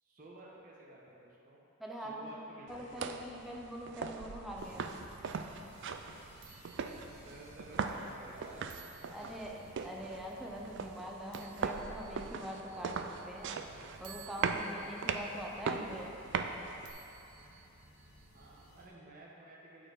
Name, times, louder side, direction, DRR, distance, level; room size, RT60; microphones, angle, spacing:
voice 1, 0.0-1.7 2.0-3.5 7.1-8.7 9.1-9.2 18.3-19.9, right 2 dB, 40° right, -5 dB, 1.0 m, -54 dB
voice 2, 1.8-2.4 2.7-5.1 9.1-13.5 14.0-16.5, equal, ahead, -2 dB, 0.6 m, -44 dB
sound 1, 2.7-16.9, right 5 dB, 55° right, 0.4 m, -40 dB
Bike Bell, 3.4-18.7, right 9 dB, 85° right, 0.8 m, -61 dB
sound 2, 4.6-18.9, equal, 80° left, 1.6 m, -58 dB
8.8 x 4.4 x 4.8 m, 2.9 s
head